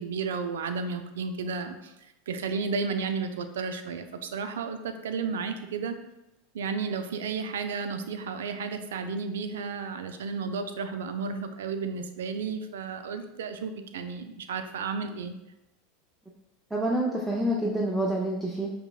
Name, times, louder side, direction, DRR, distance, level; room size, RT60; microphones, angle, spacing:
voice 1, 0.0-1.9 2.3-5.9 6.5-15.3, right 5 dB, 90° right, 8 dB, 0.3 m, -33 dB
voice 2, 16.7-18.7, right 1 dB, 5° right, -3 dB, 0.4 m, -27 dB
5.4 x 2.1 x 2.3 m, 0.92 s
supercardioid pair, 115°, 0 cm